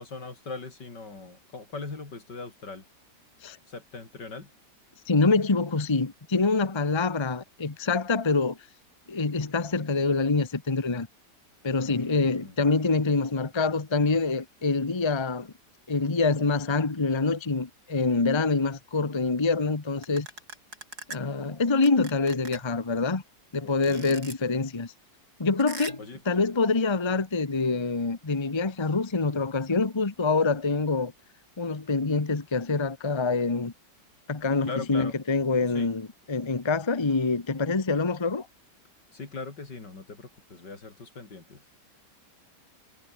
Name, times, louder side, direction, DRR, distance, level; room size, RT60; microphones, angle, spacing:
voice 1, 0.0-2.8 3.7-4.5 11.8-12.5 23.6-24.2 26.0-26.2 34.7-35.1 35.7-35.9 39.1-41.6, left 3 dB, 75° left, 4.6 m, -40 dB
voice 2, 5.1-8.6 9.1-11.1 11.6-15.5 15.9-20.3 21.1-23.2 23.5-24.9 25.4-31.1 31.6-33.7 34.3-38.5, left 3 dB, 20° left, 1.1 m, -26 dB
sound 1, 20.0-21.2 21.8-22.7 23.8-24.3 25.6-26.1, right 3 dB, 60° right, 4.8 m, -40 dB
omnidirectional pair, 1.9 m